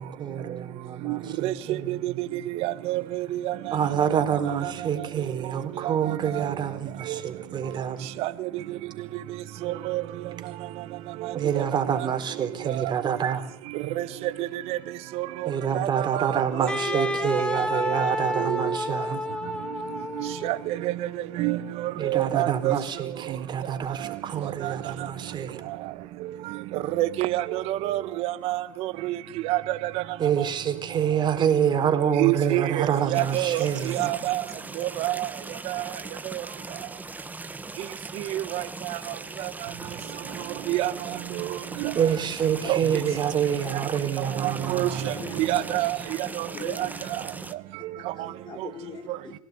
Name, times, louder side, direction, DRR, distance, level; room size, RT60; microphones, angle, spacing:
voice 1, 0.0-2.0 3.7-8.1 11.3-13.5 15.4-19.2 21.9-25.6 30.2-34.1 41.9-45.1, right 8 dB, 45° right, 7 dB, 4.4 m, -27 dB
voice 2, 2.6-3.0 3.5-3.6 8.2-8.3 9.9-10.0 14.7-14.8 15.8-15.9 16.1-16.3 16.9-17.0 17.9-18.0 20.4-20.9 21.4-21.6 22.1-22.7 27.0-28.6 29.5-29.6 32.2-32.8 33.1-33.7 33.9-34.4 34.8-35.3 35.7-35.8 38.3-38.6 40.7-40.9 41.4-41.5 42.7-42.8 44.7-44.9 45.4-46.0, right 16 dB, 65° right, 13 dB, 1.5 m, -26 dB
Wind instrument woodwind instrument, 16.7-20.7, left 2 dB, 10° left, 2.6 m, -30 dB
sound 1, 33.1-47.5, right 3 dB, 15° right, 1.9 m, -39 dB
voice 3, 42.6-43.0 44.5-44.6 45.1-45.6 46.5-47.1 48.0-49.3, left 5 dB, 45° left, 10 dB, 6.4 m, -42 dB
26.0 x 17.0 x 9.9 m, 0.70 s
supercardioid pair, 90°, 11 cm